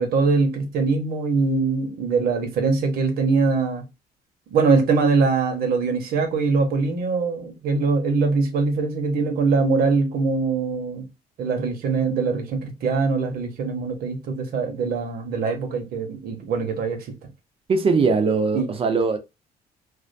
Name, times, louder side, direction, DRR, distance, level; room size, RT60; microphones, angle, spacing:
voice 1, 0.0-3.8 4.5-11.0 11.4-17.0 18.5-18.7, right 4 dB, 65° right, 0.8 m, -22 dB
voice 2, 17.7-19.2, right 4 dB, 35° right, 0.4 m, -20 dB
2.4 x 2.1 x 2.5 m
cardioid pair, 110°, 17 cm